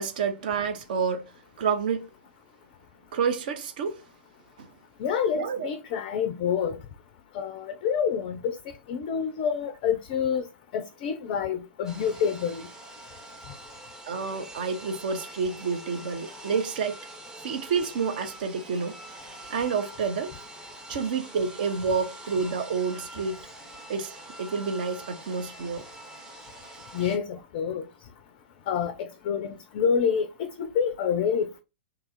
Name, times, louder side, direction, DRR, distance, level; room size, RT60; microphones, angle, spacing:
voice 1, 0.0-1.3 1.6-2.1 3.1-4.0 4.6-4.7 5.4-5.7 14.1-17.0 17.4-19.0 19.5-20.3 20.9-23.4 23.9-25.8, right 5 dB, 50° right, 0.6 m, -29 dB
voice 2, 5.0-6.8 7.3-8.6 8.9-10.5 10.7-12.7 26.9-27.8 28.7-31.6, left 7 dB, 35° left, 0.4 m, -27 dB
sound 1, 11.8-27.2, right 1 dB, 10° right, 0.7 m, -45 dB
2.8 x 2.4 x 3.8 m
figure-of-eight pair, 105°, 6 cm